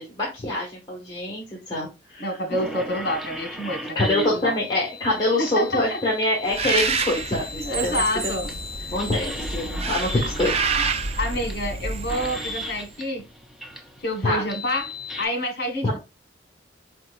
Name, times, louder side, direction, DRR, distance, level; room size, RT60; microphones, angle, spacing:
voice 1, 0.0-2.3 4.0-7.9 8.2-8.5 8.9-10.9 14.2-14.4 15.8-16.0, left 1 dB, 25° left, 1.7 m, -25 dB
voice 2, 2.2-4.6 5.4-6.0 7.6-8.5 8.8-8.9 11.2-13.2 14.0-14.9 15.2-16.0, left 1 dB, 55° left, 1.5 m, -27 dB
sound 1, 2.5-15.3, left 2 dB, ahead, 0.7 m, -37 dB
Bird, 6.5-12.9, right 4 dB, 35° right, 0.5 m, -28 dB
4.6 x 4.5 x 2.5 m
head